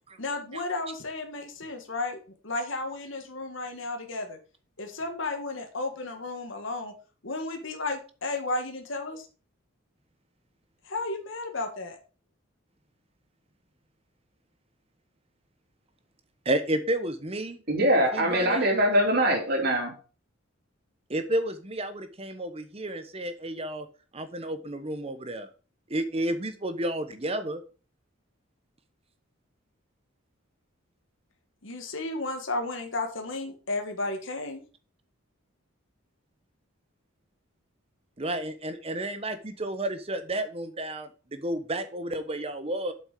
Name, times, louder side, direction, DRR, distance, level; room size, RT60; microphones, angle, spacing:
voice 1, 0.2-2.2 2.4-4.4 4.8-6.9 7.2-9.3 10.9-12.0 31.6-34.6, left 2 dB, 70° left, 4 dB, 1.7 m, -33 dB
voice 2, 16.4-17.6 18.1-18.7 21.1-23.9 24.1-25.5 25.9-27.6 38.2-42.9, right 1 dB, 30° right, 10 dB, 1.0 m, -31 dB
voice 3, 17.7-19.9, equal, 50° right, 1 dB, 3.0 m, -23 dB
7.6 x 6.1 x 5.0 m, 0.36 s
head